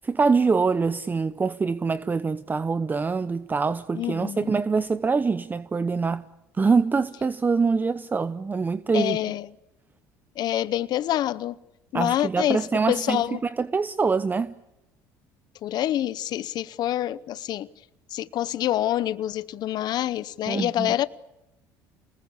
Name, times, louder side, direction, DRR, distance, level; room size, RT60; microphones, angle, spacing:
voice 1, 0.0-6.2 6.5-9.2 11.9-14.5 20.5-21.1, right 4 dB, 20° right, 0.8 m, -24 dB
voice 2, 3.9-4.5 8.9-9.5 10.4-11.6 11.9-13.4 15.6-17.7 18.1-21.1, left 12 dB, 55° left, 0.8 m, -26 dB
27.5 x 20.0 x 8.4 m
supercardioid pair, 90°, 8 cm